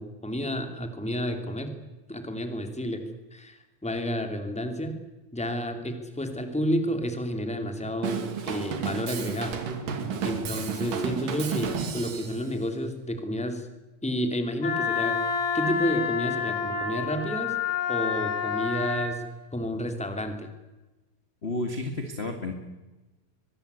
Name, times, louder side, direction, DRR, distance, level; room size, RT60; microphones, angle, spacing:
voice 1, 0.0-1.7 2.1-3.0 3.3-5.0 5.3-9.6 10.2-13.7 14.0-15.2 15.5-17.6 17.9-19.2 19.5-20.5, equal, ahead, 6 dB, 2.0 m, -30 dB
Drum kit / Drum, 8.0-12.4, right 6 dB, 65° right, 3.8 m, -32 dB
Wind instrument woodwind instrument, 14.6-19.2, left 6 dB, 75° left, 4.7 m, -28 dB
voice 2, 21.4-22.5, left 2 dB, 25° left, 5 dB, 1.4 m, -31 dB
23.5 x 22.5 x 8.2 m, 1.1 s
omnidirectional pair, 4.3 m